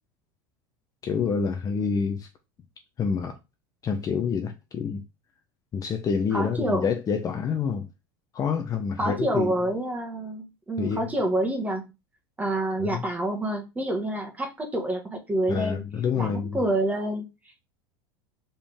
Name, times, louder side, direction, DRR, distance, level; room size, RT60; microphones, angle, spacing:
voice 1, 1.0-2.3 3.0-3.3 3.8-5.0 5.7-7.9 8.3-9.5 10.8-11.1 12.8-13.0 15.5-16.6, left 6 dB, 30° left, 1.0 m, -27 dB
voice 2, 6.3-6.9 9.0-11.9 12.4-15.8 16.1-17.3, right 1 dB, 10° right, 1.7 m, -27 dB
5.2 x 5.2 x 3.6 m
supercardioid pair, 125°, 12 cm